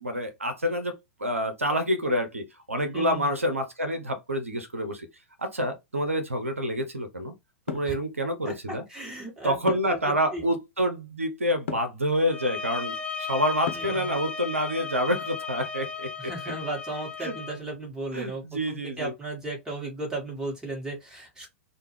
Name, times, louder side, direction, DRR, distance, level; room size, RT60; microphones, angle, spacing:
voice 1, 0.0-5.1 5.4-7.3 7.7-8.8 9.4-16.3 17.2-17.3 18.1-19.1, equal, 80° right, 0.6 m, -28 dB
voice 2, 2.9-3.3 7.9-8.0 8.4-10.5 13.7-14.1 16.2-21.5, right 2 dB, 10° right, 1.2 m, -36 dB
sound 1, 7.7-8.0 9.7-10.0 11.7-12.0 13.7-14.0, left 6 dB, 65° left, 0.6 m, -34 dB
sound 2, 12.2-17.6, left 5 dB, 15° left, 0.4 m, -35 dB
2.2 x 2.1 x 3.1 m
figure-of-eight pair, 100°, 7 cm